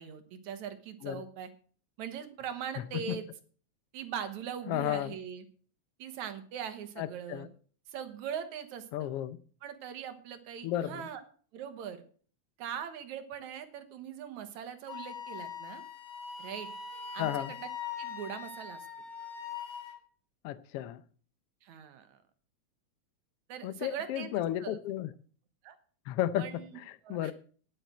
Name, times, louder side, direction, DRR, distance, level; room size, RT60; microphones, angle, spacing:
voice 1, 0.0-1.5 2.0-3.3 3.9-5.4 6.0-7.5 7.9-9.1 9.6-11.2 11.5-12.0 12.6-15.8 16.4-16.7 17.1-17.7 18.0-18.9 21.6-22.2 23.5-24.8 25.6-25.8 26.4-26.8 27.0-27.3, right 8 dB, 75° right, 9 dB, 2.7 m, -41 dB
voice 2, 4.7-5.1 7.0-7.5 8.9-9.4 10.6-11.1 17.2-17.5 20.4-21.0 23.6-25.1 26.1-26.5 26.8-27.3, left 12 dB, 75° left, 15 dB, 1.4 m, -33 dB
Wind instrument woodwind instrument, 14.9-20.0, left 6 dB, 35° left, 2.0 m, -42 dB
10.5 x 8.2 x 7.7 m, 0.44 s
omnidirectional pair, 3.4 m